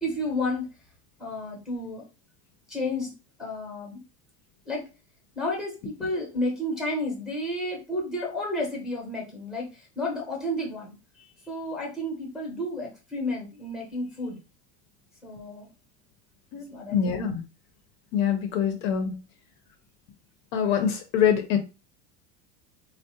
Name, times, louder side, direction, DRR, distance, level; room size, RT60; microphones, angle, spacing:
voice 1, 0.0-0.7 1.2-2.0 2.7-3.1 3.4-4.0 4.7-4.8 5.3-14.4 15.2-15.7 16.7-17.2, left 1 dB, ahead, -1 dB, 0.7 m, -31 dB
voice 2, 16.9-17.4 18.1-19.2 20.5-21.6, left 8 dB, 50° left, 6 dB, 0.5 m, -24 dB
3.5 x 2.0 x 2.7 m, 0.29 s
cardioid pair, 170°, 39 cm